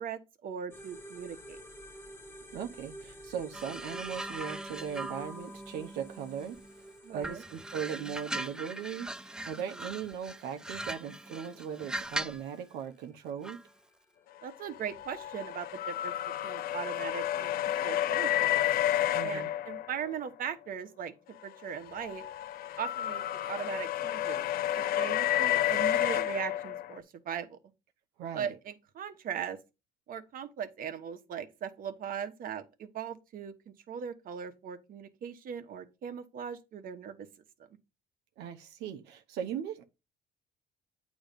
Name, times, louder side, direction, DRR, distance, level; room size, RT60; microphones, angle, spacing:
voice 1, 0.0-1.6 7.0-7.4 9.7-9.9 14.4-16.1 16.4-17.6 17.8-18.5 19.2-22.3 22.8-24.5 24.7-27.6 28.3-29.6 30.1-37.3, right 8 dB, 55° right, 1.1 m, -39 dB
sound 1, 0.7-14.4, right 1 dB, 15° left, 1.4 m, -51 dB
voice 2, 2.5-6.6 7.1-13.6 19.1-19.5 28.2-28.6 38.4-39.9, right 8 dB, 90° right, 0.8 m, -38 dB
sound 2, 3.5-6.8 7.2-12.5 13.4-13.7, right 1 dB, 5° right, 0.4 m, -40 dB
sound 3, 14.6-20.3 21.6-27.0, left 12 dB, 60° left, 0.5 m, -31 dB
8.9 x 3.1 x 5.2 m
cardioid pair, 110°, 17 cm